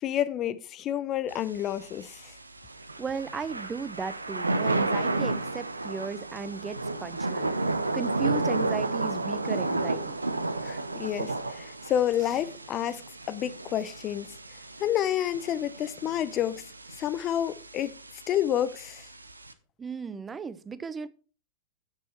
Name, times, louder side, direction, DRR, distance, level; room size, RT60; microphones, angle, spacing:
voice 1, 0.0-2.3 10.6-13.0 13.3-14.3 14.8-16.7 17.0-18.0 18.3-19.1, left 11 dB, 35° left, 0.6 m, -29 dB
Thunder / Rain, 1.3-19.5, right 2 dB, 85° right, 0.6 m, -32 dB
voice 2, 3.0-10.1 19.8-21.1, right 5 dB, 20° right, 0.6 m, -36 dB
8.9 x 6.4 x 4.4 m
figure-of-eight pair, 90°, 0 cm